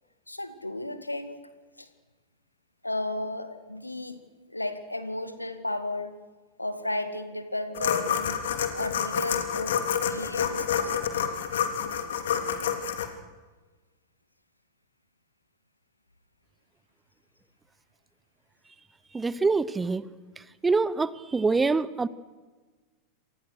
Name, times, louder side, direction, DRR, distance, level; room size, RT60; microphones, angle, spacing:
voice 1, 0.3-1.4 1.8-1.9 2.8-4.2 4.5-6.2 6.6-8.4 8.7-9.8 10.1-11.0, left 1 dB, 85° left, 10 dB, 2.1 m, -33 dB
sound 1, 7.7-13.1, left 8 dB, 60° left, 3.1 m, -28 dB
voice 2, 19.1-20.1 20.4-22.1, right 4 dB, 10° right, 18 dB, 1.0 m, -25 dB
28.5 x 26.5 x 6.5 m, 1.3 s
figure-of-eight pair, 90°, 0 cm